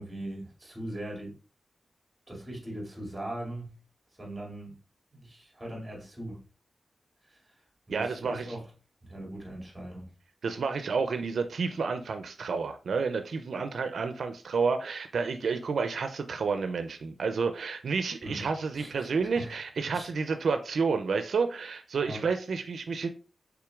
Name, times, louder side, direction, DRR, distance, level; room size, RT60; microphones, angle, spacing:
voice 1, 0.0-1.3 2.3-3.8 4.2-4.7 5.1-6.4 7.2-7.5 7.9-8.7 9.0-10.1 18.2-18.5 18.7-19.5 19.9-20.1 22.0-22.3, right 1 dB, 15° right, 2.3 m, -40 dB
voice 2, 7.9-8.5 10.4-23.1, right 5 dB, 85° right, 0.4 m, -30 dB
5.8 x 3.7 x 2.3 m
wide cardioid pair, 95°, 0 cm